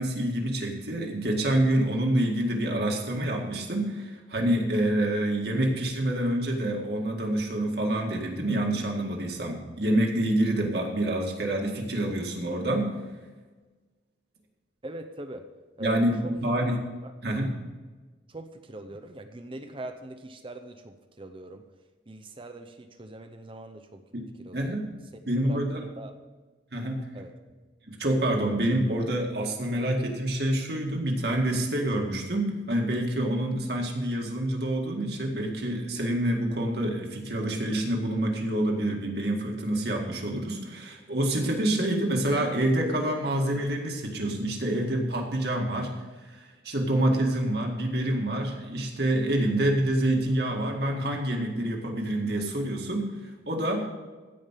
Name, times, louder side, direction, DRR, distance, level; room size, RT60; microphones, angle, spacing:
voice 1, 0.0-12.9 15.8-16.8 17.2-17.6 24.1-24.3 24.5-24.8 25.3-25.8 26.7-27.0 27.9-53.9, right 1 dB, 55° right, 1 dB, 2.0 m, -27 dB
voice 2, 14.8-15.5 15.8-16.3 17.0-17.1 18.3-21.7 22.1-24.0 24.4-24.8 25.4-26.1 27.1-27.3, right 1 dB, 25° right, 7 dB, 0.7 m, -41 dB
15.5 x 5.2 x 7.4 m, 1.3 s
head